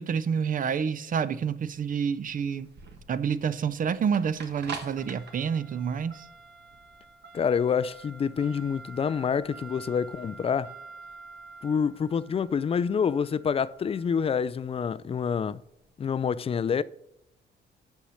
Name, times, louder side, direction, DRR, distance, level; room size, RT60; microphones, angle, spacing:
voice 1, 0.0-2.7 3.1-6.2, right 7 dB, 45° right, 0.5 m, -28 dB
sound 1, 1.7-15.8, right 4 dB, 60° right, 1.5 m, -46 dB
voice 2, 7.3-10.7 11.6-15.6 16.0-16.8, left 6 dB, 30° left, 0.4 m, -27 dB
7.0 x 5.5 x 6.3 m
cardioid pair, 90°, 20 cm